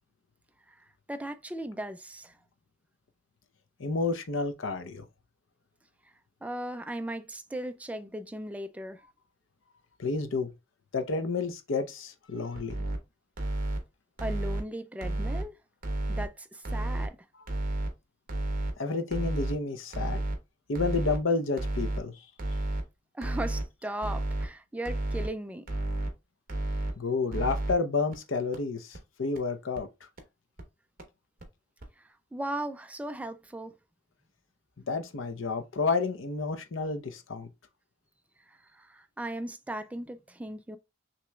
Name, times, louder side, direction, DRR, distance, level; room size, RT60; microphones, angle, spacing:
voice 1, 0.7-2.3 6.4-9.0 14.2-15.6 16.1-17.2 23.1-25.7 32.0-33.8 38.5-40.8, right 1 dB, 5° right, 0.3 m, -37 dB
voice 2, 3.8-5.0 10.0-10.5 10.9-12.8 18.8-20.2 20.7-22.1 27.0-29.9 34.9-37.5, left 4 dB, 85° left, 0.7 m, -30 dB
sound 1, 12.6-13.0 13.4-13.8 14.2-14.6 15.0-15.4 15.8-16.2 16.6-17.1 17.5-17.9 18.3-18.7 19.1-19.5 19.9-20.4 20.8-21.2 21.6-22.0 22.4-22.8 23.2-23.6 24.0-24.5 24.9-25.3 25.7-26.1 26.5-26.9 27.3-27.7 28.1-28.2 28.5-28.6 28.9-29.0 29.4-29.5 29.8-29.9 30.2-30.3 30.6-30.7 31.0-31.1 31.4-31.5 31.8-31.9, right 2 dB, 50° right, 1.0 m, -31 dB
5.9 x 3.0 x 2.3 m
head